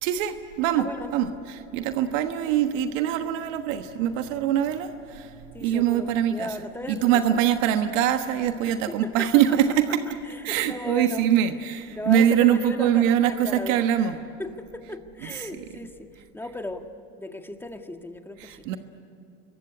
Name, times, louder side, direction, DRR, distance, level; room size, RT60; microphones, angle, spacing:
voice 1, 0.0-0.9 1.1-5.3 5.6-6.6 6.9-10.0 10.4-14.2 15.2-15.5 18.4-18.8, right 10 dB, 85° right, 7 dB, 1.4 m, -23 dB
voice 2, 0.7-1.1 5.5-7.4 8.7-9.4 10.2-11.3 11.9-13.8 14.4-16.9 17.2-18.7, left 1 dB, 5° left, 5 dB, 1.7 m, -36 dB
26.5 x 23.0 x 9.8 m, 2.7 s
supercardioid pair, 115°, 37 cm